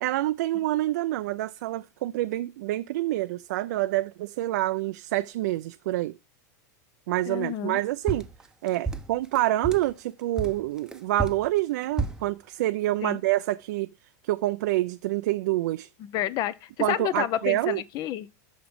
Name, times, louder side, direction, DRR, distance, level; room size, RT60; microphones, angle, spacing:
voice 1, 0.0-6.1 7.1-8.3 8.6-13.9 14.2-15.9 16.8-17.8, right 16 dB, 75° right, 0.4 m, -27 dB
voice 2, 7.3-7.8 13.0-13.2 16.0-18.3, left 12 dB, 45° left, 0.6 m, -30 dB
sound 1, 8.1-9.9 10.4-12.3, right 3 dB, 5° right, 0.7 m, -32 dB
6.0 x 5.0 x 5.3 m
hypercardioid pair, 110°, 9 cm